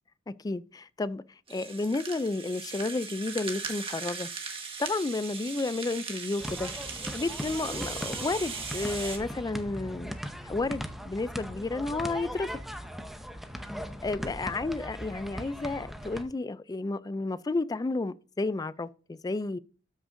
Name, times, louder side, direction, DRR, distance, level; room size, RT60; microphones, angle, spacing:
voice 1, 0.4-1.2 1.5-4.3 4.8-6.7 7.1-10.1 10.4-12.6 14.0-19.6, left 3 dB, 20° left, 0.3 m, -31 dB
Rattle (instrument), 1.5-9.2, right 5 dB, 30° right, 1.5 m, -38 dB
sound 1, 6.4-16.2, equal, ahead, 0.7 m, -39 dB
13.0 x 6.3 x 2.6 m
head